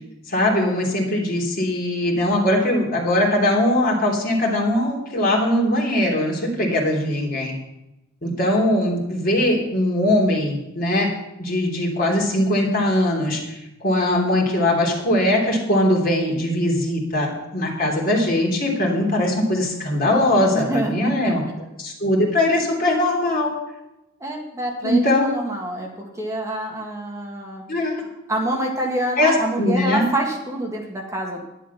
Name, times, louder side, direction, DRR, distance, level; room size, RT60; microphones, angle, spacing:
voice 1, 0.3-7.5 8.2-11.1 11.4-21.4 21.8-23.5 24.8-25.3 27.7-28.0 29.2-30.0, left 1 dB, 50° left, -1 dB, 3.2 m, -21 dB
voice 2, 20.5-21.3 24.2-27.6 28.3-31.4, right 1 dB, 15° right, 0 dB, 1.8 m, -27 dB
11.0 x 10.5 x 5.8 m, 0.93 s
head